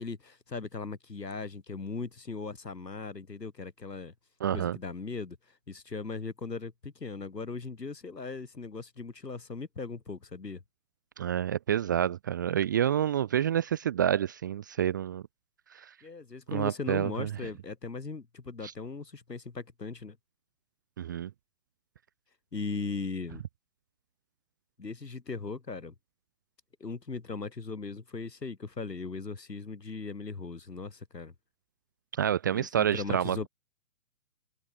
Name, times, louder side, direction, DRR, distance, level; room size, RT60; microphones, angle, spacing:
voice 1, 0.0-4.1 4.5-5.4 5.7-10.6 16.0-20.2 22.5-23.4 24.8-25.9 26.8-31.3 32.5-33.5, left 4 dB, 85° left, 5.4 m, -38 dB
voice 2, 4.4-4.8 11.2-15.2 15.7-15.9 16.5-17.3 18.6-18.7 21.0-21.3 32.2-33.5, right 10 dB, 15° right, 0.5 m, -28 dB
figure-of-eight pair, 130°, 48 cm